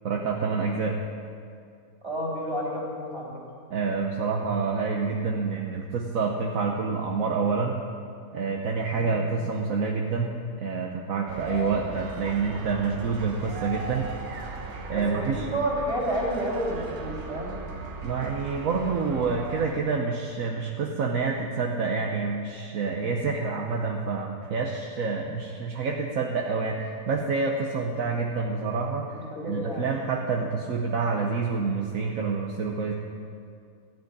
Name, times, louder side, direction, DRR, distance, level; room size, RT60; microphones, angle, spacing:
voice 1, 0.0-1.0 3.7-7.8 8.3-14.1 14.9-15.4 18.0-32.9, right 4 dB, 70° right, 1 dB, 1.3 m, -28 dB
voice 2, 2.0-3.4 8.9-9.3 14.9-17.6 29.1-29.9, right 1 dB, 30° right, -5 dB, 3.6 m, -30 dB
sound 1, 11.3-19.7, right 2 dB, 85° right, 1.8 m, -37 dB
14.5 x 7.5 x 9.6 m, 2.3 s
omnidirectional pair, 1.5 m